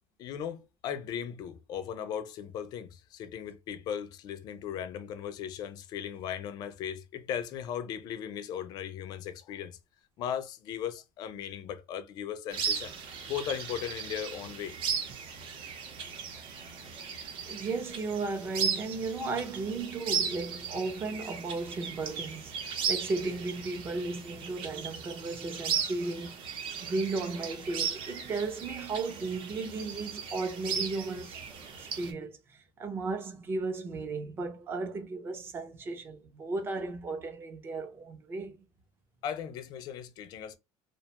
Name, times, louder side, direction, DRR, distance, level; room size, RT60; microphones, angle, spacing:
voice 1, 0.2-9.8 10.2-12.9 13.3-14.8 39.2-40.6, left 9 dB, 40° left, 0.3 m, -37 dB
sound 1, 12.5-32.1, right 6 dB, 55° right, 0.7 m, -36 dB
voice 2, 17.5-26.4 26.8-31.4 31.8-38.6, right 3 dB, 20° right, 0.4 m, -35 dB
2.5 x 2.1 x 2.8 m
cardioid pair, 175°, 11 cm